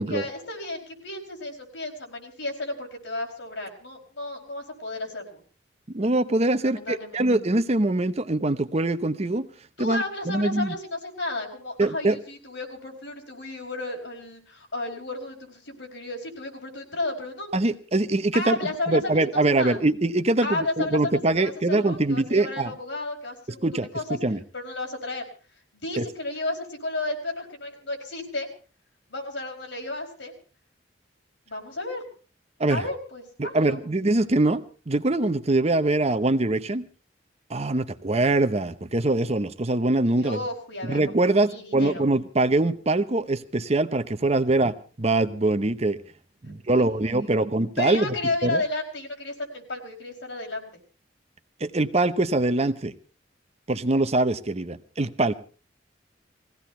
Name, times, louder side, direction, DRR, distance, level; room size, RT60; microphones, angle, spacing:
voice 1, 0.0-5.4 6.6-7.3 9.8-17.5 18.3-19.8 20.4-23.7 23.9-24.0 24.5-25.2 25.8-28.5 29.1-30.3 31.5-32.0 32.7-33.8 40.2-42.1 46.4-47.5 47.8-50.7, left 2 dB, 80° left, 4.7 m, -33 dB
voice 2, 5.9-9.5 9.8-10.8 11.8-12.2 17.5-18.6 18.9-22.7 23.6-24.4 26.0-26.1 32.6-32.8 33.4-36.9 37.5-40.4 40.8-46.0 46.4-48.1 48.4-48.6 51.6-52.9 53.7-55.3, right 2 dB, 35° right, 0.8 m, -23 dB
20.0 x 16.0 x 4.4 m
head